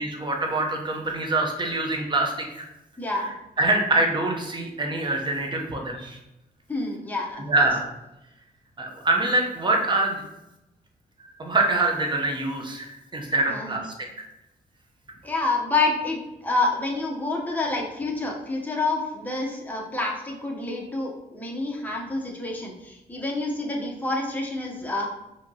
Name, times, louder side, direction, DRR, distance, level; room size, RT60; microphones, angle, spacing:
voice 1, 0.0-2.6 3.6-6.2 7.4-7.8 8.8-10.2 11.4-13.9, right 2 dB, 30° right, 1 dB, 0.8 m, -25 dB
voice 2, 3.0-3.3 6.7-7.4 13.5-13.8 15.2-25.1, left 2 dB, 10° left, -1 dB, 0.8 m, -28 dB
4.9 x 2.9 x 2.8 m, 0.93 s
cardioid pair, 110°, 17 cm